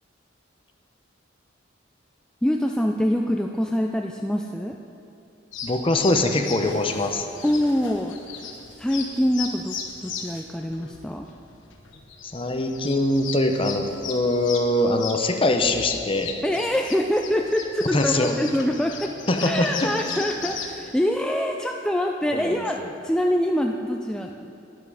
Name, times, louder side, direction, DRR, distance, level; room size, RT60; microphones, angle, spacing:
voice 1, 2.4-4.8 7.4-8.2 8.8-11.3 16.4-19.1 19.4-24.5, equal, 5° left, 2 dB, 0.3 m, -25 dB
sound 1, 5.5-20.7, left 5 dB, 75° left, 1.4 m, -37 dB
voice 2, 5.6-7.3 12.2-16.3 17.9-18.3 19.3-19.9 22.3-22.9, left 2 dB, 30° left, 5 dB, 0.7 m, -23 dB
11.0 x 10.5 x 4.9 m, 2.7 s
head